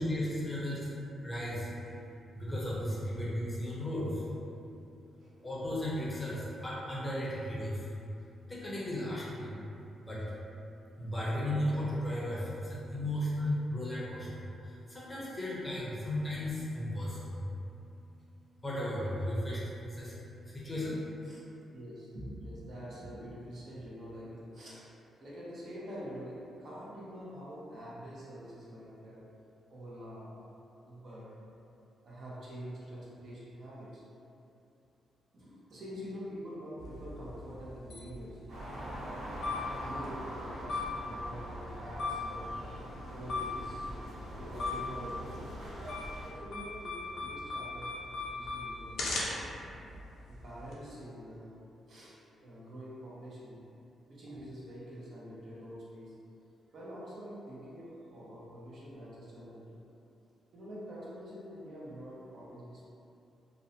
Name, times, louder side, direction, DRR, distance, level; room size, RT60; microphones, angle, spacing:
voice 1, 0.0-0.9 1.2-1.7 2.3-4.2 5.4-7.9 8.5-9.6 10.0-10.2 11.0-17.4 18.6-20.1 20.5-21.0, left 1 dB, 15° left, -7 dB, 0.6 m, -35 dB
voice 2, 0.7-1.1 1.9-2.0 2.4-2.5 5.2-5.3 21.2-21.5 21.7-24.9 25.2-29.3 29.7-31.4 32.0-34.0 35.3-38.8 39.8-42.6 43.1-45.6 46.2-49.6 50.3-51.6 51.9-53.7 54.1-56.2 56.7-59.8 60.5-62.8, equal, 55° right, -7 dB, 0.6 m, -46 dB
sound 1, 36.8-50.7, left 3 dB, 85° left, 0.5 m, -40 dB
sound 2, 38.5-46.3, equal, 85° right, 0.9 m, -43 dB
2.5 x 2.0 x 2.7 m, 2.7 s
cardioid pair, 110°, 0 cm